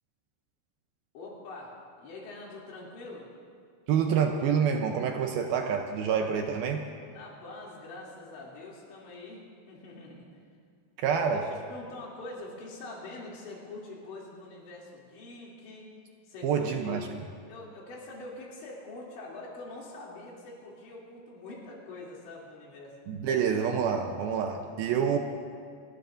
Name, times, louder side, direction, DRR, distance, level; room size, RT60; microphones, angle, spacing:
voice 1, 1.2-3.3 7.1-10.3 11.1-11.4 11.7-15.9 16.3-17.1 17.5-23.0 24.5-24.7, left 2 dB, 85° left, -4 dB, 5.3 m, -44 dB
voice 2, 3.9-6.8 11.0-11.4 16.4-17.1 23.1-25.2, right 7 dB, 75° right, 4 dB, 2.2 m, -27 dB
26.5 x 19.5 x 2.6 m, 2.1 s
omnidirectional pair, 5.1 m